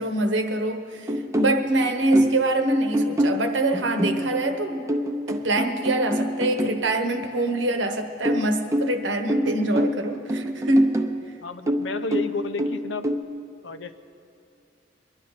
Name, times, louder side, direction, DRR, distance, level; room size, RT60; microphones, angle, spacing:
voice 1, 0.0-4.9 5.3-11.0, right 1 dB, 80° right, 5 dB, 1.1 m, -24 dB
sound 1, 1.1-2.5 2.9-6.8 8.3-11.2 11.7-13.2, equal, 15° right, 0.6 m, -26 dB
voice 2, 11.4-13.1 13.6-13.9, left 4 dB, 80° left, 10 dB, 0.7 m, -31 dB
23.0 x 11.0 x 4.1 m, 2.4 s
head